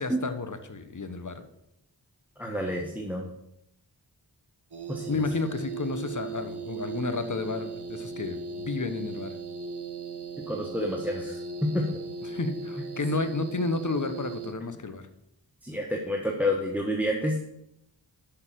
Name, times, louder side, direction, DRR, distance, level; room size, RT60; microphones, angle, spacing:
voice 1, 0.0-1.5 5.1-9.4 12.3-15.1, left 3 dB, 45° left, 9 dB, 1.1 m, -31 dB
voice 2, 2.4-3.3 4.9-5.2 10.5-12.0 15.6-17.4, left 1 dB, 5° right, 1 dB, 1.3 m, -29 dB
sound 1, 4.7-14.5, right 4 dB, 65° right, 1.2 m, -38 dB
6.8 x 5.8 x 7.4 m, 0.81 s
cardioid pair, 45°, 42 cm